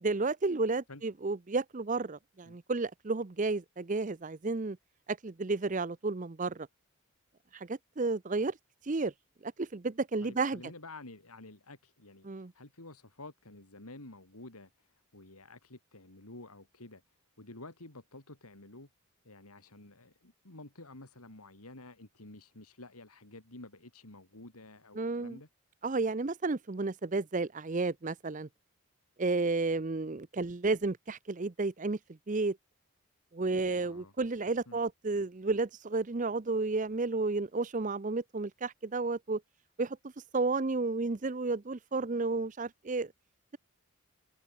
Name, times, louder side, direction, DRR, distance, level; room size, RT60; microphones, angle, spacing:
voice 1, 0.0-4.8 5.1-6.7 7.5-8.5 8.8-9.1 9.4-10.6 12.2-12.5 25.0-25.4 25.8-28.5 29.2-32.0 32.3-32.6 33.3-39.4 39.8-40.0 40.3-43.1, right 3 dB, 35° right, 0.6 m, -32 dB
voice 2, 10.2-17.0 17.4-18.9 19.2-25.5 33.8-34.1 34.7-34.8, left 2 dB, 85° left, 3.7 m, -51 dB
head